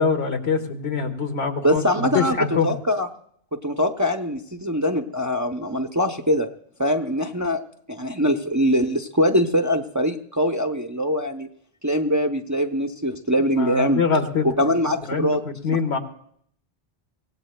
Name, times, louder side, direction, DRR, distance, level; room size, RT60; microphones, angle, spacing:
voice 1, 0.0-2.7 13.6-14.7 15.1-16.0, left 5 dB, 80° left, 4 dB, 1.6 m, -24 dB
voice 2, 1.6-3.1 3.6-6.5 6.8-7.6 7.9-11.5 11.8-14.0 14.6-15.4, equal, 20° right, 3 dB, 0.5 m, -22 dB
24.5 x 17.5 x 2.2 m, 0.64 s
omnidirectional pair, 1.1 m